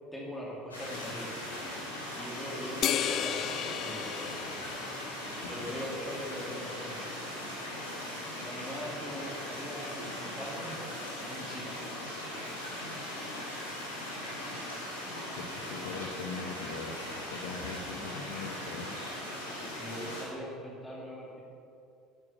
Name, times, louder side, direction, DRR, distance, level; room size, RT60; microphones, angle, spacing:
voice 1, 0.1-1.3 2.1-4.2 5.5-7.0 8.4-10.7 11.2-11.7 19.8-21.4, equal, 5° left, -5 dB, 2.8 m, -41 dB
sound 1, 0.7-20.2, left 1 dB, 85° left, 3.5 m, -39 dB
sound 2, 2.8-5.5, left 10 dB, 50° left, 0.5 m, -34 dB
voice 2, 15.4-18.9, left 5 dB, 65° left, 2 dB, 1.1 m, -41 dB
10.5 x 9.8 x 7.1 m, 2.6 s
figure-of-eight pair, 65°, 0 cm